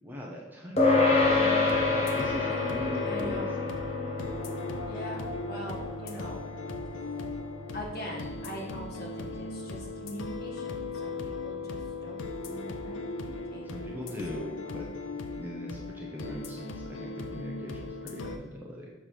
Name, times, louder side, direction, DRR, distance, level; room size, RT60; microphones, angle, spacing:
voice 1, 0.0-3.7 6.9-7.1 13.6-18.9, left 1 dB, 10° right, -3 dB, 0.7 m, -41 dB
sound 1, 0.8-10.4, left 3 dB, 30° left, 1.0 m, -29 dB
sound 2, 1.2-18.4, left 3 dB, 70° left, 0.6 m, -38 dB
voice 2, 3.0-3.6 4.9-6.4 7.7-12.2 12.4-14.9, equal, 45° left, -3 dB, 1.5 m, -42 dB
6.7 x 3.2 x 5.7 m, 1.1 s
head